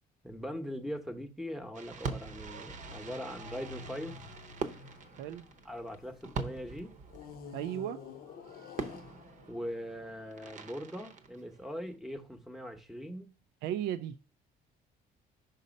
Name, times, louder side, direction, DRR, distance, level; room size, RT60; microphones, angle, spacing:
voice 1, 0.2-4.2 5.6-6.9 9.5-13.3, equal, ahead, 0.8 m, -41 dB
sound 1, 1.6-6.3 7.1-10.5, left 6 dB, 65° left, 0.7 m, -50 dB
Fireworks, 1.7-12.0, right 5 dB, 50° right, 0.8 m, -43 dB
voice 2, 7.5-8.0 13.6-14.2, right 11 dB, 85° right, 0.4 m, -35 dB
5.3 x 4.0 x 5.2 m
cardioid pair, 110°, 17 cm